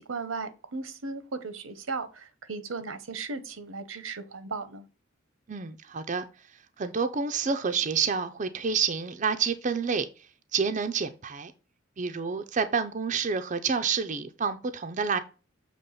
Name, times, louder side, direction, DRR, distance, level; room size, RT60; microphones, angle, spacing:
voice 1, 0.0-4.9, right 4 dB, 90° right, 0.9 m, -36 dB
voice 2, 5.5-6.2 6.8-10.1 10.5-11.5 12.0-15.2, right 5 dB, 40° right, 0.5 m, -28 dB
6.8 x 3.0 x 5.6 m
head